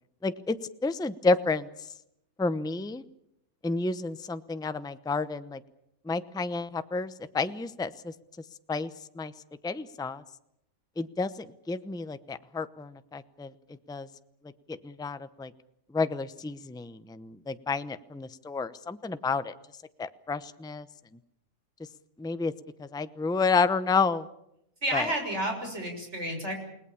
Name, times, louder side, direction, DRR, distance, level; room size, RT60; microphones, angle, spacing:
voice 1, 0.2-0.6 0.8-1.7 2.4-3.0 3.6-5.6 6.1-8.1 8.7-8.9 9.1-9.3 9.6-10.2 11.0-13.5 13.9-14.1 14.8-15.5 15.9-19.5 20.0-20.9 22.2-22.5 22.8-24.2 24.9-25.1, left 4 dB, 5° left, 12 dB, 0.6 m, -30 dB
voice 2, 24.8-26.5, right 1 dB, 50° right, 3 dB, 6.6 m, -31 dB
29.5 x 19.0 x 7.1 m, 0.80 s
omnidirectional pair, 1.5 m